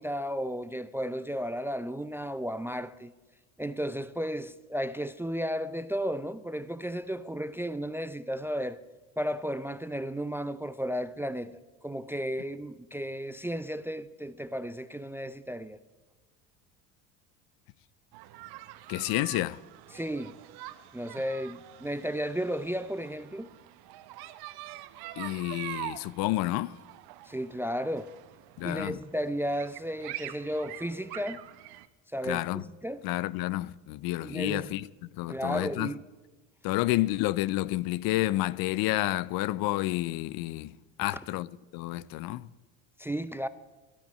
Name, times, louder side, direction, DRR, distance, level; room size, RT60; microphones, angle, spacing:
voice 1, 0.0-3.1 3.6-8.8 9.2-15.8 19.9-20.3 20.9-23.5 27.2-28.1 28.6-31.4 32.1-33.0 34.2-34.8 35.3-36.0 43.0-43.5, equal, 5° right, 0.4 m, -34 dB
sound 1, 18.1-31.9, right 15 dB, 65° right, 1.0 m, -45 dB
voice 2, 18.9-19.6 25.2-26.7 28.6-29.0 32.2-32.6 33.0-35.9 36.6-41.5 41.7-42.5, left 17 dB, 60° left, 0.6 m, -30 dB
12.5 x 9.7 x 9.3 m
supercardioid pair, 90°, 41 cm